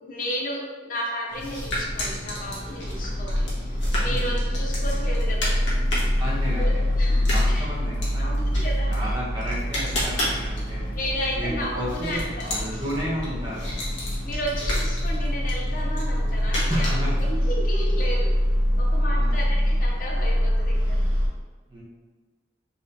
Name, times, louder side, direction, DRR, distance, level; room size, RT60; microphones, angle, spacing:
voice 1, 0.0-5.6 6.6-7.7 8.2-9.2 10.9-12.8 14.2-16.9 17.2-18.3 18.8-21.0, equal, 45° left, -2 dB, 0.8 m, -33 dB
sound 1, 1.3-17.4, left 1 dB, 85° left, 1.4 m, -33 dB
sound 2, 1.7-21.3, equal, 80° right, 1.3 m, -25 dB
voice 2, 6.2-8.3 8.9-10.9 11.3-13.8 16.7-17.5 19.0-19.4 21.7-21.8, equal, 25° right, -6 dB, 1.2 m, -33 dB
4.0 x 3.1 x 3.9 m, 1.4 s
head